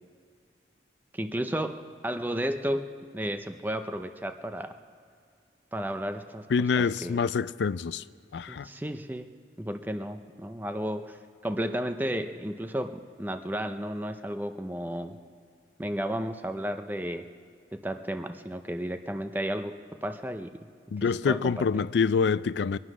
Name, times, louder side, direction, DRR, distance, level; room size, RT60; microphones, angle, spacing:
voice 1, 1.1-4.7 5.7-6.5 6.8-7.2 8.5-9.3 9.6-15.2 15.8-17.2 17.7-20.7 21.3-21.8, equal, 10° right, 0.5 m, -33 dB
voice 2, 6.5-8.0 8.3-8.7 20.9-22.8, left 5 dB, 75° left, 0.4 m, -26 dB
23.0 x 9.8 x 6.1 m
head